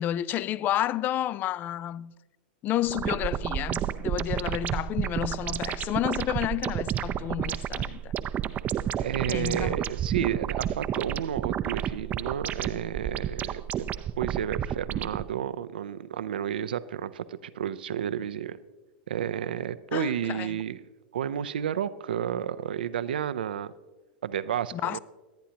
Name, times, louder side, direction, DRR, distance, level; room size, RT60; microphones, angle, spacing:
voice 1, 0.0-2.1 2.6-8.1 9.3-9.8 19.9-20.6 24.7-25.0, left 12 dB, 35° left, 0.4 m, -30 dB
sound 1, 2.9-15.3, right 10 dB, 30° right, 0.5 m, -31 dB
voice 2, 9.0-13.9 14.2-18.6 19.1-20.8 21.1-23.7 24.2-25.0, right 9 dB, 80° right, 0.5 m, -31 dB
22.0 x 9.1 x 2.9 m
hypercardioid pair, 105°, 5 cm